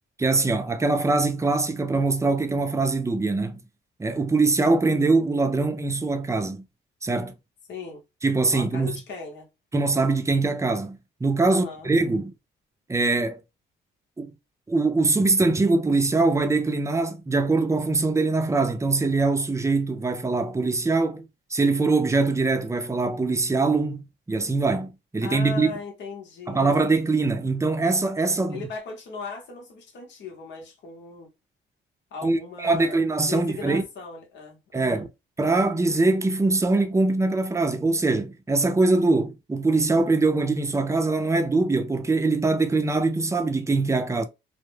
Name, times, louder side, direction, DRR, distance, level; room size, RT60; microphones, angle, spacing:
voice 1, 0.2-3.6 4.0-6.6 7.0-7.3 8.2-9.0 9.7-12.3 12.9-13.4 14.2-14.3 14.7-25.7 26.5-28.6 32.2-33.8 34.7-35.1 35.4-44.2, right 3 dB, 15° right, 0.4 m, -23 dB
voice 2, 7.7-8.0 8.5-9.5 11.5-11.9 25.2-26.7 28.5-31.3 32.1-33.0 33.3-35.1, left 5 dB, 65° left, 0.9 m, -38 dB
2.1 x 2.1 x 3.1 m
cardioid pair, 90°, 20 cm